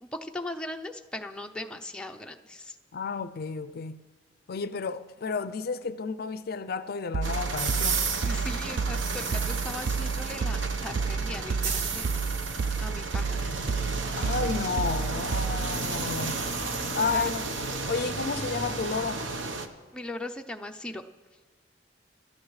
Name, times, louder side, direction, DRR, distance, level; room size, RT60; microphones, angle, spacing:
voice 1, 0.0-2.7 8.2-12.2 12.8-13.5 14.1-14.3 17.0-17.3 19.9-21.0, left 1 dB, 5° left, 0.5 m, -39 dB
voice 2, 2.9-4.0 4.5-8.1 13.3-13.6 14.2-16.5 16.9-17.4 17.9-19.3, left 4 dB, 55° left, 0.4 m, -32 dB
sound 1, 7.1-15.8, right 5 dB, 60° right, 0.4 m, -31 dB
sound 2, 7.2-19.7, right 4 dB, 85° right, 1.0 m, -32 dB
26.0 x 13.0 x 3.2 m
head